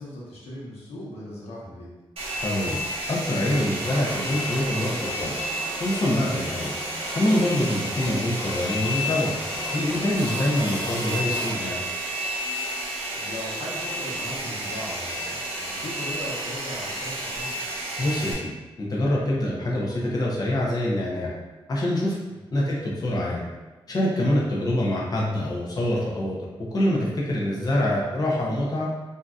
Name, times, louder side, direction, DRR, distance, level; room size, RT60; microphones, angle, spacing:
voice 1, 0.0-1.9 13.1-17.5 22.3-22.4, left 1 dB, 90° left, -5 dB, 0.9 m, -38 dB
Domestic sounds home sounds, 2.2-18.3, equal, 75° right, 0.7 m, -31 dB
voice 2, 2.4-2.8 3.1-5.3 5.8-6.7 7.1-9.3 9.7-11.8 18.0-18.5 18.8-21.3 21.7-22.1 22.5-23.4 23.9-26.4 26.7-28.9, left 1 dB, 40° left, -4 dB, 0.6 m, -25 dB
sound 1, 3.5-11.6, equal, 15° left, 1.1 m, -36 dB
3.6 x 2.6 x 2.3 m, 1.2 s
cardioid pair, 95°, 10 cm